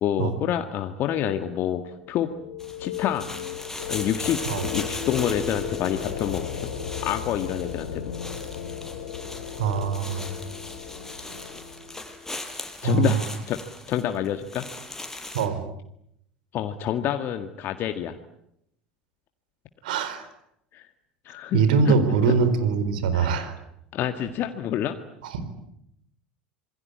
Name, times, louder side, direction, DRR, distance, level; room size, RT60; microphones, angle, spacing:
voice 1, 0.0-2.3 2.8-3.2 3.9-6.7 7.0-8.0 12.8-13.6 13.9-14.7 16.5-18.2 20.7-20.9 21.3-22.0 23.1-23.3 23.9-25.0, left 10 dB, 45° left, 7 dB, 1.8 m, -27 dB
sound 1, 2.0-12.6, left 7 dB, 75° left, 3.5 m, -35 dB
sound 2, 2.6-15.5, left 2 dB, 10° left, 5.1 m, -39 dB
voice 2, 9.6-10.3 12.8-13.3 15.3-15.6 19.8-20.3 21.5-23.5 25.2-25.5, right 6 dB, 70° right, 12 dB, 4.3 m, -23 dB
27.0 x 22.5 x 9.8 m, 0.78 s
figure-of-eight pair, 75°, 5 cm